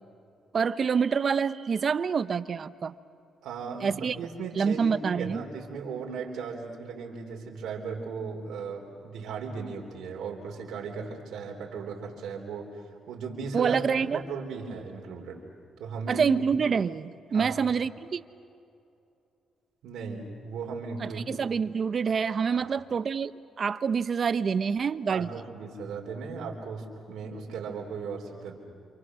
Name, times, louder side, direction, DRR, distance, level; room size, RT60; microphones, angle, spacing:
voice 1, 0.5-2.9 3.8-4.2 4.6-5.4 13.5-14.2 16.1-18.2 21.0-23.3 23.6-25.3, right 6 dB, 50° right, 13 dB, 0.9 m, -27 dB
voice 2, 3.4-15.4 15.8-16.3 17.3-17.6 19.8-21.4 22.6-22.7 25.1-28.6, right 5 dB, 80° right, 0 dB, 3.9 m, -37 dB
28.0 x 28.0 x 6.3 m, 2.6 s
cardioid pair, 90°, 0 cm